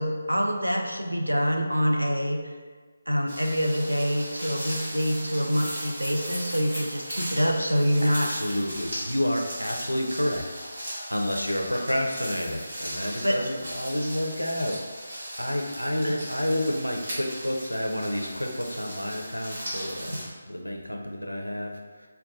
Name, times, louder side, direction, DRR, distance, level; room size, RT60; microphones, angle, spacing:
voice 1, 0.0-2.4 3.1-8.3 13.2-13.5 16.0-16.2 20.1-20.2, equal, 90° right, 2 dB, 0.5 m, -26 dB
sound 1, 3.3-20.2, equal, 50° right, 1.3 m, -37 dB
voice 2, 8.0-10.5 11.1-22.1, left 1 dB, 90° left, 1 dB, 0.5 m, -30 dB
5.1 x 2.2 x 2.6 m, 1.5 s
figure-of-eight pair, 150°, 0 cm